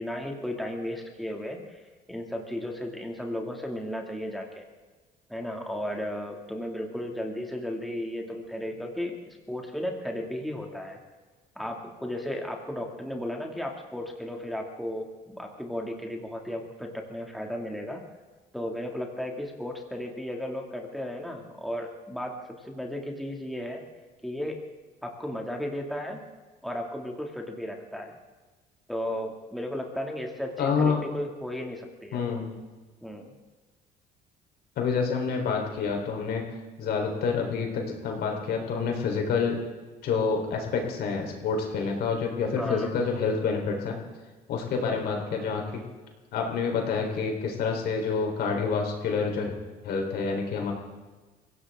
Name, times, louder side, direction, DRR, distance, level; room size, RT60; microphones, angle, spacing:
voice 1, 0.0-1.8 2.1-4.7 5.3-11.0 11.6-18.0 18.5-23.8 24.2-24.6 25.0-26.2 26.6-28.2 28.9-32.2 33.0-33.3 42.6-42.9, left 1 dB, ahead, 1 dB, 2.2 m, -34 dB
voice 2, 30.6-31.0 32.1-32.5 34.8-36.4 36.8-39.6 40.0-44.0 44.5-45.8 46.3-49.5 49.8-50.7, left 5 dB, 70° left, 2 dB, 3.8 m, -28 dB
24.0 x 16.5 x 3.6 m, 1.3 s
cardioid pair, 110°, 17 cm